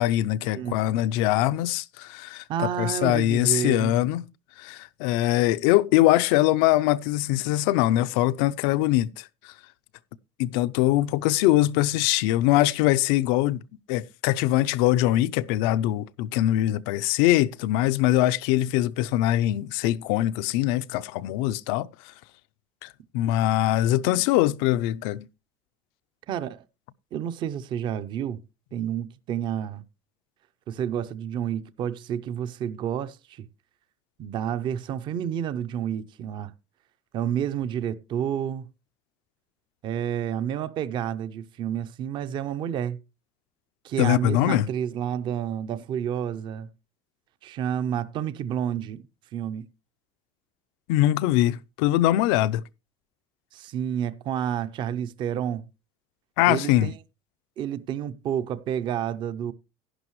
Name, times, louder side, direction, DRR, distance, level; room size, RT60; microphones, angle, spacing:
voice 1, 0.0-2.4 2.8-4.2 4.6-9.3 10.4-13.6 13.9-21.9 22.8-22.9 23.1-25.3 44.0-44.7 50.9-52.6 56.4-56.9, left 15 dB, 75° left, 0.5 m, -22 dB
voice 2, 2.5-4.0 26.3-26.6 27.1-28.4 28.7-29.8 30.7-33.5 34.2-36.5 37.1-38.7 39.8-43.0 43.8-46.7 47.4-49.0 49.3-49.7 53.5-55.6 56.5-56.9 57.6-59.5, right 9 dB, 35° right, 0.6 m, -30 dB
11.0 x 10.5 x 3.1 m
cardioid pair, 165°, 13 cm